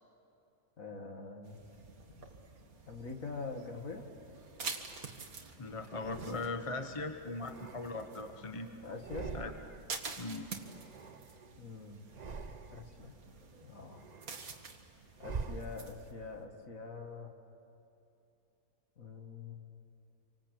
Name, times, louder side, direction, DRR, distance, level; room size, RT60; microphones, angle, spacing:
voice 1, 0.8-1.6 2.1-2.3 2.9-4.0 8.8-9.3 11.6-12.0 12.7-13.2 13.6-14.1 15.2-17.3 19.0-19.5, left 4 dB, 50° left, 4 dB, 2.4 m, -44 dB
sound 1, 1.4-16.1, right 4 dB, 55° right, 2.2 m, -48 dB
sound 2, 4.0-5.2 5.9-6.8 7.3-8.5 8.9-10.0 10.2-11.6 12.0-13.1 13.5-16.3, right 4 dB, 35° right, 0.7 m, -46 dB
voice 2, 5.6-8.7 9.3-9.5 10.2-10.5, left 3 dB, 20° left, 7 dB, 1.0 m, -39 dB
28.0 x 25.0 x 8.4 m, 2.8 s
omnidirectional pair, 1.9 m